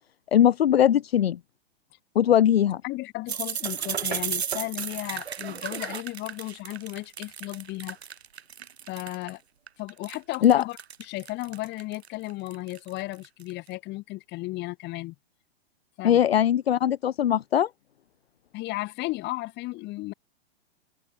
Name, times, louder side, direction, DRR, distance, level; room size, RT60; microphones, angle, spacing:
voice 1, 0.3-1.4 2.1-2.8 10.4-10.6 16.0-17.7, left 10 dB, 70° left, 1.0 m, -20 dB
voice 2, 2.8-8.0 8.9-9.4 9.8-15.1 16.0-16.2 18.5-20.1, left 20 dB, 35° left, 4.9 m, -34 dB
sound 1, 3.3-9.3 9.7-13.5, right 8 dB, 90° right, 0.7 m, -34 dB
open air
hypercardioid pair, 115°, 31 cm